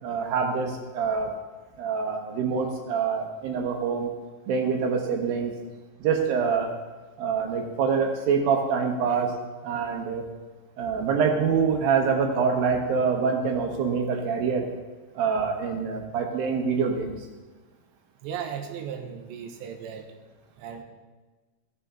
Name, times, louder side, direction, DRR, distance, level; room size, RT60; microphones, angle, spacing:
voice 1, 0.0-1.3 1.8-4.1 4.5-5.5 6.0-6.7 7.2-9.3 9.6-10.3 10.8-14.7 15.2-17.2, right 6 dB, 65° right, 2 dB, 2.6 m, -25 dB
voice 2, 18.2-20.1 20.6-20.8, right 8 dB, 80° right, 5 dB, 3.2 m, -36 dB
17.5 x 8.4 x 3.8 m, 1.3 s
omnidirectional pair, 5.1 m